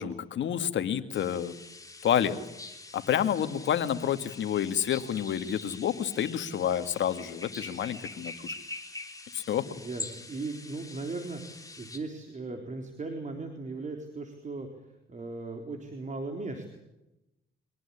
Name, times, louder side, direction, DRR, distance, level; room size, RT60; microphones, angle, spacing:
voice 1, 0.0-1.5 2.0-2.4 2.9-8.5 9.3-9.6, left 9 dB, 70° left, 10 dB, 2.0 m, -29 dB
sound 1, 1.1-12.0, left 3 dB, 15° left, 3.6 m, -44 dB
voice 2, 9.7-14.7 15.1-16.7, right 3 dB, 40° right, 4 dB, 3.9 m, -37 dB
25.0 x 19.0 x 10.0 m, 0.93 s
cardioid pair, 90°, 20 cm